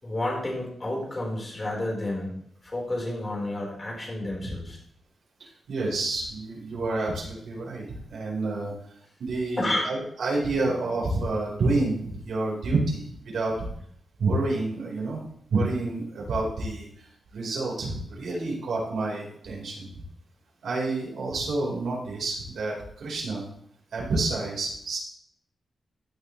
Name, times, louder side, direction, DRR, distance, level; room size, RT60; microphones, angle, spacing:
voice 1, 0.0-2.3 2.6-4.8 9.6-9.9 10.5-10.7, left 1 dB, 25° left, -2 dB, 5.0 m, -30 dB
voice 2, 5.4-8.7 9.2-13.7 14.2-15.2 15.5-20.0 20.6-23.4 23.9-25.0, right 2 dB, 80° right, -4 dB, 4.9 m, -29 dB
16.0 x 10.5 x 3.4 m, 0.67 s
wide cardioid pair, 135°, 0 cm